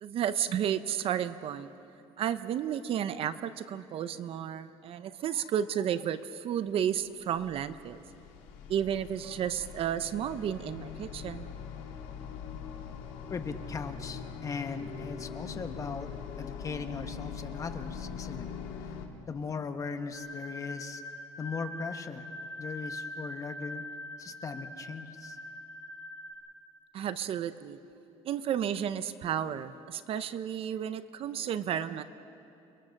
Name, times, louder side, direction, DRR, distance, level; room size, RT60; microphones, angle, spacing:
voice 1, 0.0-1.7 2.2-8.0 8.7-11.5 26.9-27.8 28.2-32.0, right 9 dB, 50° right, 13 dB, 0.8 m, -32 dB
sound 1, 6.9-19.1, left 6 dB, 90° left, 2.6 m, -42 dB
voice 2, 13.3-16.1 16.4-18.5 19.3-21.0 21.4-22.3 22.6-23.8 24.2-25.4, left 5 dB, 25° left, 7 dB, 1.3 m, -38 dB
sound 2, 20.1-26.3, left 1 dB, 5° left, 6.8 m, -43 dB
30.0 x 22.0 x 6.6 m, 2.7 s
cardioid pair, 135°, 12 cm